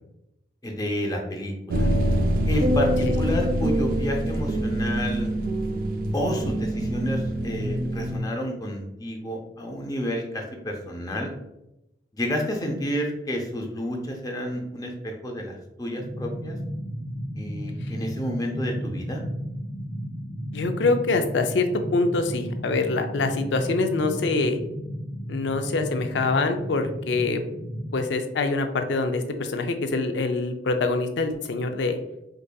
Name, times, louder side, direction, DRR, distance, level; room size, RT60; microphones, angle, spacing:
voice 1, 0.6-1.9 2.5-5.3 6.1-11.3 12.1-16.6 17.4-19.2, equal, 20° left, 1 dB, 0.5 m, -30 dB
sound 1, 1.7-8.2, right 1 dB, 50° right, 0.4 m, -25 dB
sound 2, 16.0-28.0, equal, 75° right, 0.8 m, -34 dB
voice 2, 20.5-24.6 25.3-27.4 27.9-32.0, left 3 dB, 75° left, 7 dB, 0.4 m, -25 dB
4.7 x 2.7 x 2.2 m, 0.89 s
head